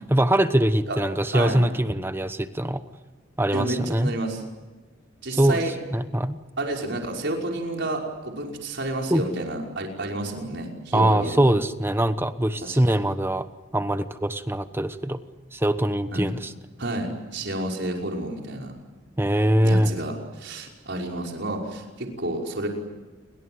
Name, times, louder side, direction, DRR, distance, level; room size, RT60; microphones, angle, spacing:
voice 1, 0.1-2.8 3.4-4.1 5.4-5.6 5.9-6.4 9.1-9.2 10.9-13.5 13.7-15.2 15.5-16.5 19.2-19.9, right 1 dB, 10° right, 11 dB, 1.1 m, -22 dB
voice 2, 3.5-4.4 5.2-5.7 6.6-11.6 12.6-13.0 16.1-16.3 16.8-18.7 19.6-22.7, right 1 dB, 60° right, 1 dB, 5.6 m, -30 dB
29.0 x 24.5 x 8.0 m, 1.2 s
head